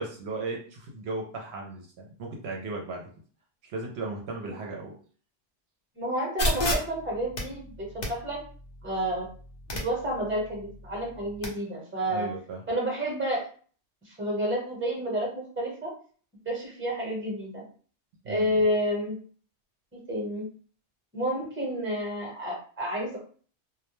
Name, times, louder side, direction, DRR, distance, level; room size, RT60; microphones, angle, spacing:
voice 1, 0.0-3.1 3.6-4.9 12.1-12.6 18.2-18.5, right 3 dB, 70° right, -1 dB, 0.8 m, -36 dB
voice 2, 6.0-8.4 8.8-9.3 9.8-12.3 12.7-13.4 14.0-15.3 15.6-15.9 16.4-17.6 18.3-19.1 20.1-20.4 21.1-23.2, equal, 10° right, -2 dB, 0.8 m, -30 dB
sound 1, 6.4-11.5, left 1 dB, 45° left, 0.7 m, -34 dB
2.2 x 2.1 x 3.0 m, 0.43 s
omnidirectional pair, 1.2 m